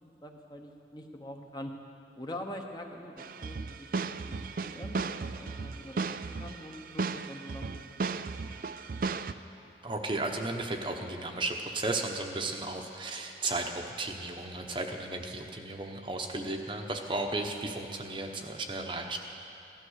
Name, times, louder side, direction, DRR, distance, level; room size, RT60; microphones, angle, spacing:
voice 1, 0.0-1.7 2.1-3.9 4.1-4.4 4.6-8.7, left 1 dB, 25° left, 2 dB, 1.0 m, -44 dB
sound 1, 3.2-9.3, right 4 dB, 50° right, 0.4 m, -35 dB
voice 2, 9.8-19.2, right 2 dB, 30° right, 3 dB, 0.9 m, -34 dB
16.5 x 12.5 x 6.4 m, 2.7 s
head